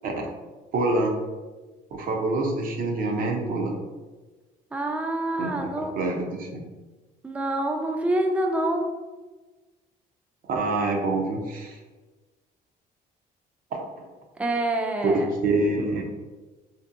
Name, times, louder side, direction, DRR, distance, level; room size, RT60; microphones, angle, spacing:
voice 1, 0.7-1.1 1.9-3.8 5.4-5.7 6.0-6.6 10.4-11.8 13.7-14.1 15.0-15.1 15.4-16.0, right 2 dB, 55° right, 1 dB, 0.6 m, -26 dB
voice 2, 4.7-5.9 7.2-8.9 14.4-15.3, right 1 dB, 10° right, 3 dB, 0.3 m, -26 dB
2.6 x 2.6 x 2.5 m, 1.2 s
cardioid pair, 110°, 17 cm